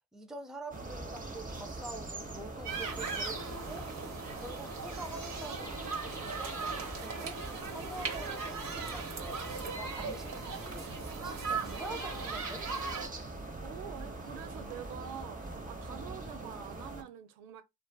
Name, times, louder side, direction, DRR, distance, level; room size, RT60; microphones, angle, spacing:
voice 1, 0.1-3.9 4.3-9.4 9.8-11.0 11.2-12.6, right 2 dB, ahead, 0.4 m, -46 dB
sound 1, 0.7-17.0, right 2 dB, 15° right, 0.9 m, -42 dB
sound 2, 2.7-13.1, right 4 dB, 45° right, 1.0 m, -39 dB
voice 2, 13.6-17.6, right 9 dB, 80° right, 0.6 m, -46 dB
2.4 x 2.4 x 2.2 m
hypercardioid pair, 50°, 48 cm